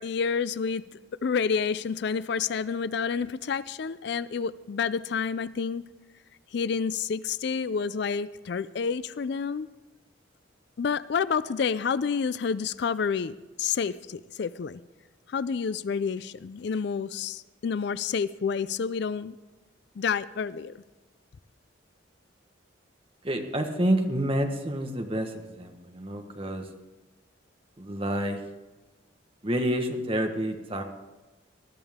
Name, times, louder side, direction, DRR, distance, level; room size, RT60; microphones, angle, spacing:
voice 1, 0.0-5.8 6.5-9.7 10.8-14.8 15.3-19.4 20.0-20.8, left 6 dB, 55° left, 16 dB, 0.4 m, -29 dB
voice 2, 23.2-26.7 27.8-28.4 29.4-30.8, right 1 dB, 25° right, 4 dB, 1.3 m, -28 dB
20.0 x 13.0 x 3.6 m, 1.2 s
head